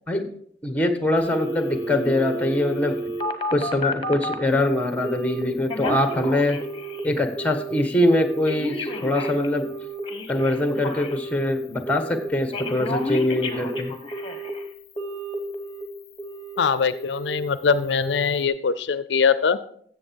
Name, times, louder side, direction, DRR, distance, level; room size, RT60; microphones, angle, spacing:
voice 1, 0.6-3.0 3.5-6.6 7.0-9.7 10.3-13.9, left 1 dB, 10° left, 8 dB, 1.2 m, -23 dB
Telephone, 1.2-4.4 5.0-5.4 5.7-7.1 7.4-7.8 8.1-11.5 11.9-12.3 12.5-14.6 15.0-15.8 16.2-16.6 16.9-17.3 17.7-18.1 18.4-18.5, equal, 30° left, 1.1 m, -31 dB
voice 2, 16.6-19.6, left 5 dB, 70° left, 15 dB, 0.5 m, -22 dB
14.0 x 7.7 x 4.6 m, 0.64 s
head